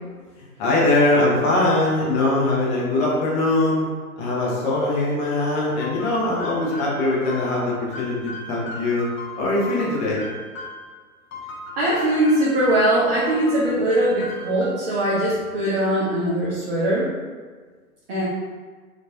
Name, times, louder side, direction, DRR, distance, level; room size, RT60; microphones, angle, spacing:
voice 1, 0.6-3.8 4.2-9.1 9.4-10.2, left 2 dB, 15° left, -5 dB, 0.6 m, -21 dB
sound 1, 5.8-10.9 11.3-12.9 13.3-15.0, left 1 dB, 60° left, 1.1 m, -37 dB
voice 2, 11.8-17.1 18.1-18.2, right 1 dB, 40° right, -8 dB, 1.1 m, -21 dB
4.5 x 3.1 x 2.7 m, 1.5 s
figure-of-eight pair, 120°, 44 cm